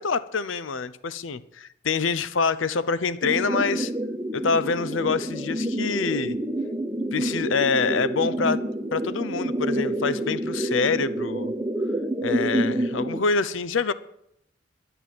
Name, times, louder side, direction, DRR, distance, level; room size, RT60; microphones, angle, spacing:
voice 1, 0.0-3.9 4.3-6.4 7.1-8.6 8.9-11.5 12.2-13.9, left 5 dB, 75° left, 0.6 m, -26 dB
sound 1, 3.2-13.2, right 1 dB, 10° right, 0.9 m, -28 dB
11.0 x 11.0 x 7.6 m
head